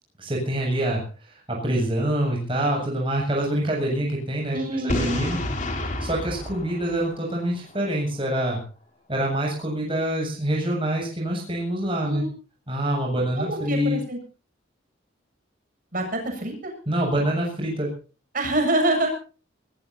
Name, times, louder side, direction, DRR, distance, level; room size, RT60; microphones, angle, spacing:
voice 1, 0.2-5.4 6.0-8.6 9.1-12.2 12.7-14.0 16.9-17.9, right 1 dB, 25° right, -1 dB, 7.6 m, -26 dB
voice 2, 4.5-5.3 12.0-12.3 13.4-14.2 15.9-16.7 18.3-19.1, right 1 dB, 45° right, 3 dB, 8.0 m, -26 dB
Boom, 4.9-7.8, left 1 dB, 40° left, 3.5 m, -30 dB
22.0 x 21.0 x 2.8 m, 0.37 s
head